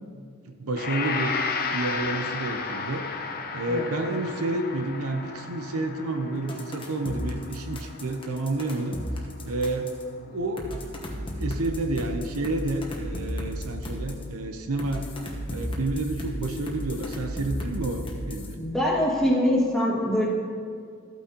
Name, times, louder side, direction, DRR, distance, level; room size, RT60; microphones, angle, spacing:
voice 1, 0.5-1.3 1.7-3.1 3.5-9.0 9.4-9.9 10.3-10.8 11.2-15.1 15.5-18.6, right 2 dB, 90° right, 5 dB, 0.8 m, -30 dB
Gong, 0.8-10.0, left 5 dB, 45° left, 0.7 m, -34 dB
sound 1, 6.5-10.0 10.6-14.2 14.8-18.5, equal, 25° left, 1.1 m, -34 dB
voice 2, 18.6-20.3, equal, ahead, -6 dB, 1.8 m, -23 dB
14.0 x 9.0 x 2.9 m, 2.2 s
head